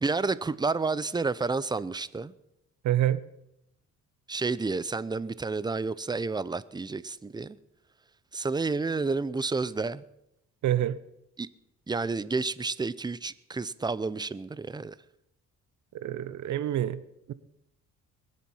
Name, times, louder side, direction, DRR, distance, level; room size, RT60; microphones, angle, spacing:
voice 1, 0.0-2.3 4.3-7.6 8.3-10.0 11.4-11.5 11.9-14.9, right 4 dB, 15° right, 0.6 m, -30 dB
voice 2, 2.8-3.2 10.6-11.0 15.9-17.0 17.3-17.4, right 12 dB, 70° right, 0.8 m, -27 dB
21.5 x 7.6 x 5.6 m
cardioid pair, 90°, 30 cm